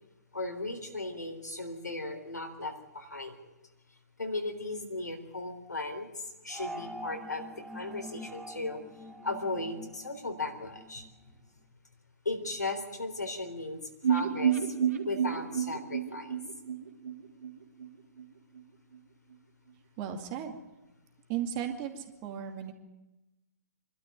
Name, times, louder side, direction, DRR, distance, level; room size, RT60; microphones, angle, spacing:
voice 1, 0.3-3.4 4.2-6.1 6.4-7.4 7.7-8.8 9.2-11.0 12.3-13.8 14.1-14.7 15.1-16.4, left 2 dB, 80° left, 5 dB, 3.8 m, -36 dB
sound 1, 6.5-11.1, equal, ahead, 1.2 m, -45 dB
sound 2, 14.0-17.9 18.2-18.3 18.6-18.7, right 8 dB, 55° right, 2.8 m, -30 dB
voice 2, 20.0-20.6 21.3-22.7, right 9 dB, 30° right, 4 dB, 2.4 m, -35 dB
26.0 x 12.5 x 9.2 m, 1.0 s
figure-of-eight pair, 120°, 9 cm